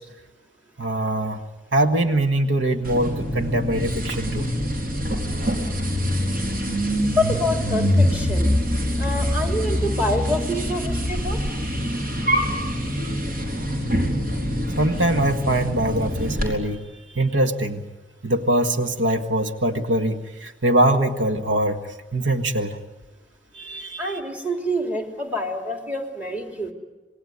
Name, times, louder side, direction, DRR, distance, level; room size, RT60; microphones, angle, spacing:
voice 1, 0.8-1.4 1.7-4.5 14.8-16.8 17.2-17.8 18.2-21.8 22.1-22.8 23.5-24.1, right 1 dB, 85° right, 6 dB, 1.8 m, -22 dB
sound 1, 2.8-16.5, equal, 50° right, 4.6 m, -24 dB
voice 2, 7.2-8.5 9.0-11.4 24.0-26.7, left 1 dB, 10° right, 3 dB, 3.0 m, -26 dB
27.0 x 20.5 x 9.6 m, 1.1 s
head